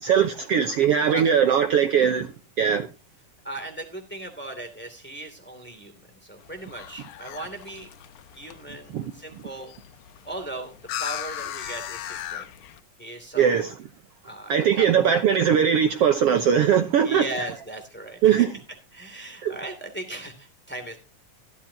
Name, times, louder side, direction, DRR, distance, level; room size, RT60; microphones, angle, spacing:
voice 1, 0.0-2.3 2.6-2.9 8.9-9.1 13.4-13.7 14.5-17.5 18.2-18.5 19.4-19.5, right 8 dB, 65° right, 1.7 m, -20 dB
voice 2, 1.1-1.5 3.4-7.9 8.3-9.8 10.2-12.5 13.0-13.6 14.2-14.9 17.0-18.4 18.9-21.0, right 1 dB, 5° left, 2.3 m, -38 dB
sound 1, 6.4-12.8, left 11 dB, 80° left, 2.5 m, -38 dB
14.5 x 13.0 x 2.8 m
omnidirectional pair, 3.5 m